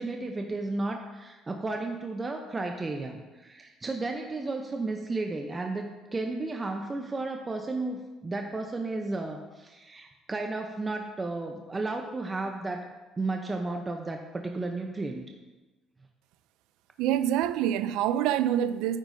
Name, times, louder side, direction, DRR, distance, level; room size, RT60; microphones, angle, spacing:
voice 1, 0.0-15.2, right 2 dB, 25° right, 0.7 m, -33 dB
voice 2, 17.0-19.0, right 11 dB, 85° right, 0.4 m, -26 dB
9.1 x 8.9 x 2.7 m
supercardioid pair, 90°, 0 cm